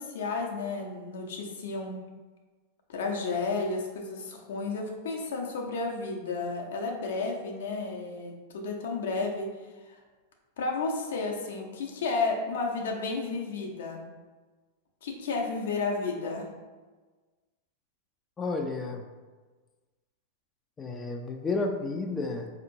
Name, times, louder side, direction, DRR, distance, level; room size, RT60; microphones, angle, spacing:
voice 1, 0.0-2.0 2.9-10.0 10.6-14.0 15.0-16.5, left 3 dB, 75° left, 1 dB, 0.6 m, -32 dB
voice 2, 18.4-19.0 20.8-22.5, left 3 dB, 20° left, 2 dB, 0.4 m, -31 dB
4.3 x 2.8 x 2.6 m, 1.3 s
hypercardioid pair, 105°, 0 cm